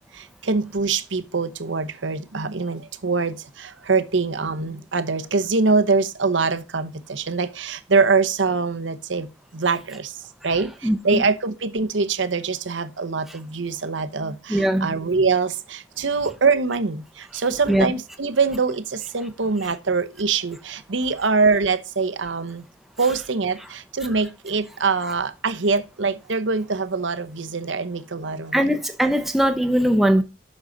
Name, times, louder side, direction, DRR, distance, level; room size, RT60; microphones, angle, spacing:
voice 1, 0.1-10.2 10.4-22.6 23.0-28.8, right 4 dB, 80° right, 0.9 m, -24 dB
voice 2, 10.8-11.2 14.5-14.9 17.7-17.9 28.5-30.2, right 1 dB, ahead, 0.8 m, -20 dB
8.6 x 6.3 x 3.9 m
head